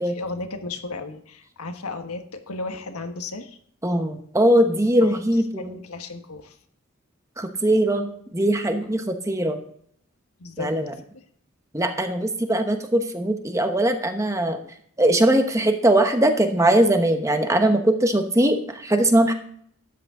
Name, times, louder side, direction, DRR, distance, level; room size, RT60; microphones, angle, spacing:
voice 1, 0.0-3.6 5.0-5.2 5.6-6.6 8.8-8.9 10.4-10.8 11.1-11.2, left 3 dB, 85° left, 6 dB, 1.4 m, -34 dB
voice 2, 3.8-5.8 7.4-8.1 8.3-9.6 10.6-10.9 11.7-14.6 15.0-19.3, right 1 dB, 15° right, 6 dB, 1.0 m, -20 dB
12.5 x 8.9 x 3.7 m, 0.64 s
head